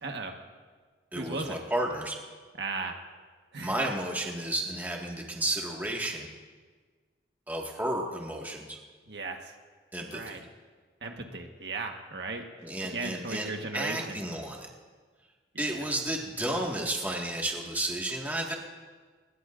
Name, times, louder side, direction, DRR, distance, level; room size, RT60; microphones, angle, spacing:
voice 1, 0.0-0.3 1.1-1.6 2.6-3.0 3.5-3.9 9.1-9.5 10.1-10.4 11.0-12.4 12.8-14.2 15.5-15.9, right 3 dB, 70° right, 3 dB, 1.4 m, -36 dB
voice 2, 1.1-2.2 3.6-6.3 7.5-8.8 9.9-10.4 12.6-14.7 15.6-18.5, right 1 dB, 10° right, -1 dB, 1.7 m, -32 dB
24.0 x 20.5 x 2.6 m, 1.5 s
head